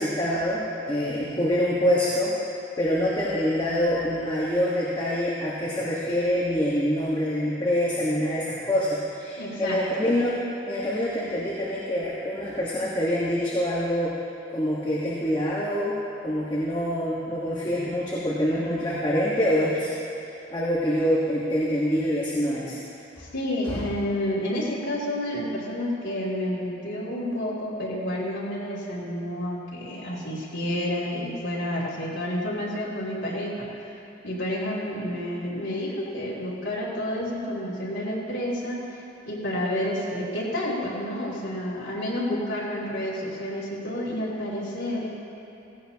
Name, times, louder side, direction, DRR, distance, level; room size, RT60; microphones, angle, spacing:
voice 1, 0.0-2.4 2.8-10.4 10.7-14.2 14.5-19.9 20.5-22.8 23.7-23.9, equal, 20° left, -7 dB, 1.4 m, -25 dB
voice 2, 9.4-9.8 23.2-33.7 34.2-38.8 39.3-45.1, left 1 dB, 70° left, -8 dB, 2.9 m, -30 dB
17.0 x 16.5 x 2.9 m, 2.9 s
head